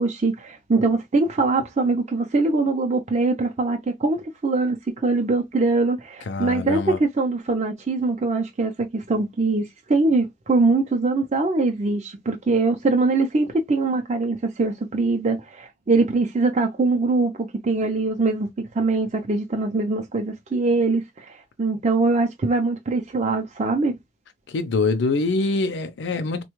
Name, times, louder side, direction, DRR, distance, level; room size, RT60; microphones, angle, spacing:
voice 1, 0.0-4.8 5.0-21.3 21.6-24.0, right 3 dB, 40° right, 0.5 m, -22 dB
voice 2, 6.3-7.0 24.5-26.4, left 3 dB, 85° left, 0.5 m, -24 dB
4.1 x 2.2 x 3.0 m
head